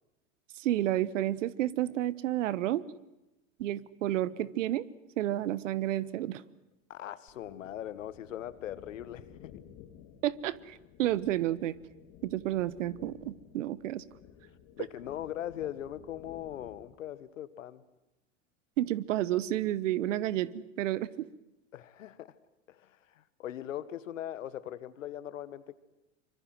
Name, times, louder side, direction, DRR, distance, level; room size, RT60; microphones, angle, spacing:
voice 1, 0.5-2.8 3.6-4.8 5.2-6.4 10.2-11.8 12.2-14.0 18.8-21.3, right 13 dB, 75° right, 20 dB, 1.2 m, -31 dB
voice 2, 6.9-9.5 14.8-17.8 21.7-22.3 22.7-25.7, left 11 dB, 80° left, 16 dB, 1.6 m, -40 dB
sound 1, 7.3-16.9, left 9 dB, 50° left, 2.9 m, -54 dB
25.5 x 24.0 x 7.8 m, 0.97 s
hypercardioid pair, 100°, 38 cm